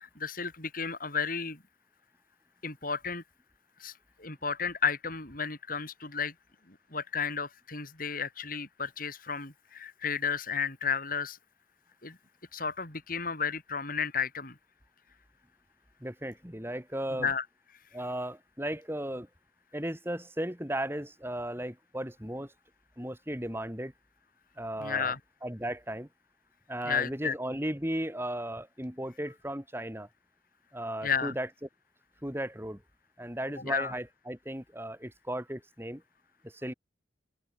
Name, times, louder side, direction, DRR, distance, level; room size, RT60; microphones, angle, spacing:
voice 1, 0.0-1.6 2.6-3.2 3.8-3.9 4.2-6.3 6.7-11.4 12.0-12.2 12.5-14.6 17.2-17.4 24.8-25.2 26.8-27.3 31.0-31.3 33.6-33.9, left 6 dB, 45° left, 5.3 m, -32 dB
voice 2, 16.0-17.3 17.9-19.3 19.7-22.5 23.0-23.9 24.6-25.1 25.4-26.1 26.7-30.1 30.7-31.5 32.2-32.8 33.2-36.0 36.4-36.7, right 1 dB, 10° right, 3.8 m, -35 dB
open air
head